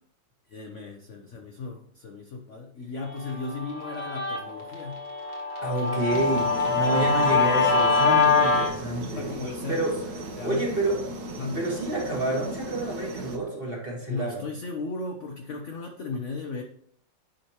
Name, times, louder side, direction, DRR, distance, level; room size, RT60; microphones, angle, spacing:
voice 1, 0.5-5.0 7.1-7.4 9.1-9.9 10.4-10.8 11.4-11.6 14.1-16.6, left 3 dB, 60° left, 3 dB, 0.8 m, -36 dB
Guitar, 3.2-8.7, left 4 dB, 80° left, 2.2 m, -24 dB
voice 2, 5.6-9.3 9.7-9.9 10.4-11.0 11.5-14.5, right 2 dB, 30° right, -2 dB, 1.7 m, -28 dB
sound 1, 6.1-13.4, right 2 dB, 60° right, 1.4 m, -37 dB
9.5 x 5.1 x 3.0 m, 0.65 s
omnidirectional pair, 2.1 m